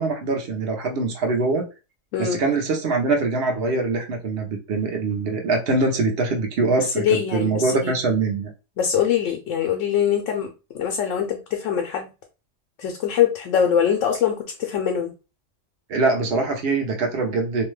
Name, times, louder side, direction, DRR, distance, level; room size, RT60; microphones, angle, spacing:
voice 1, 0.0-1.7 2.2-8.5 15.9-17.6, right 3 dB, 55° right, 2 dB, 0.9 m, -23 dB
voice 2, 6.9-8.0 8.8-12.1 12.8-15.1, left 8 dB, 80° left, 2 dB, 0.9 m, -23 dB
2.7 x 2.2 x 3.1 m, 0.31 s
omnidirectional pair, 1.3 m